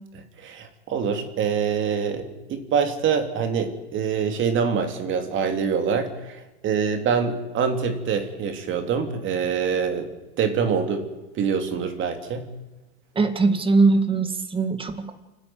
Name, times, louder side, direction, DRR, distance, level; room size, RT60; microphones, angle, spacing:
voice 1, 0.4-10.1 10.4-11.1 11.3-12.5, right 6 dB, 35° right, 6 dB, 3.0 m, -25 dB
voice 2, 13.2-15.1, right 3 dB, 15° right, 8 dB, 1.9 m, -21 dB
28.5 x 9.9 x 9.4 m, 1.1 s
supercardioid pair, 135°, 34 cm